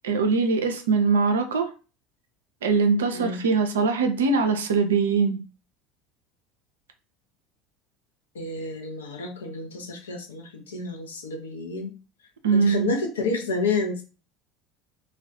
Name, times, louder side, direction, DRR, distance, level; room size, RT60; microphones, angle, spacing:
voice 1, 0.0-1.7 2.6-5.4 12.4-12.9, right 4 dB, 75° right, 6 dB, 0.4 m, -22 dB
voice 2, 8.3-11.9 12.5-14.0, left 3 dB, 80° left, 2 dB, 0.6 m, -30 dB
2.3 x 2.1 x 2.6 m, 0.32 s
figure-of-eight pair, 70°, 0 cm